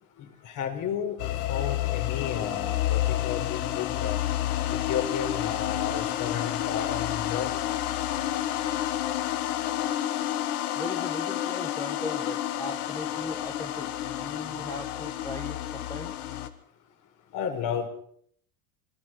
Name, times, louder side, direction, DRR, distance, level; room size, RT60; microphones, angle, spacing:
voice 1, 0.2-1.2 1.5-4.2 4.7-7.5 17.3-17.9, left 8 dB, 45° left, 6 dB, 4.6 m, -32 dB
sound 1, 1.2-16.5, left 13 dB, 85° left, 2.0 m, -30 dB
voice 2, 10.7-16.1, left 2 dB, 10° left, 4 dB, 1.5 m, -38 dB
27.5 x 21.0 x 4.6 m, 0.63 s
supercardioid pair, 130°, 44 cm